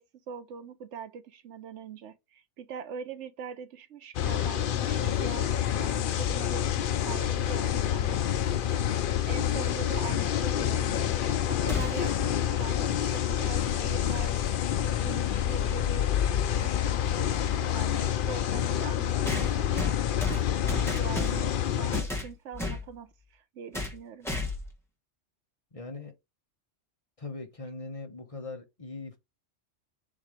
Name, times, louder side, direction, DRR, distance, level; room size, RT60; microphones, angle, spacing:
voice 1, 0.0-14.7 15.0-16.1 16.6-19.9 21.0-24.3, right 7 dB, 70° right, 1.1 m, -43 dB
sound 1, 4.1-22.0, left 10 dB, 60° left, 0.6 m, -28 dB
sound 2, 11.7-12.2 14.4-14.5 15.6-15.7 19.3-21.6 21.9-22.9 23.7-24.0 24.2-24.7, left 2 dB, ahead, 1.2 m, -33 dB
voice 2, 25.7-26.2 27.2-29.2, left 3 dB, 30° left, 1.1 m, -40 dB
7.3 x 2.9 x 4.9 m
omnidirectional pair, 1.2 m